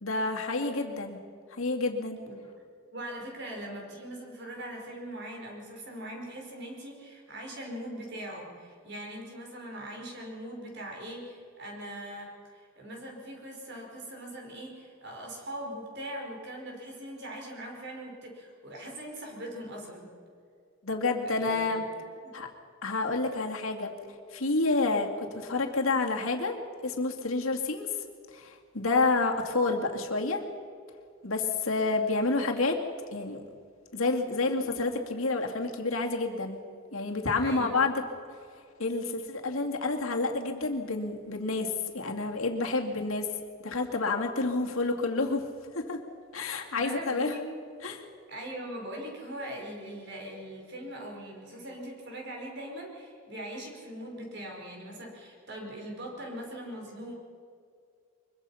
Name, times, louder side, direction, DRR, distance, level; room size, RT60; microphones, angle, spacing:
voice 1, 0.0-1.2 1.5-2.2 20.8-21.8 22.3-22.5 22.8-23.9 24.3-26.6 26.8-28.0 28.3-30.4 31.2-32.8 33.1-33.4 33.9-36.6 36.9-38.0 38.8-43.3 43.6-45.5 45.7-46.0 46.3-47.3 47.8-48.0, left 3 dB, 75° left, 2 dB, 2.3 m, -29 dB
voice 2, 2.9-20.1 21.2-21.8 22.2-22.4 37.4-37.8 46.7-47.5 48.3-57.1, right 1 dB, 50° right, 0 dB, 5.2 m, -41 dB
23.5 x 22.5 x 5.7 m, 2.3 s
head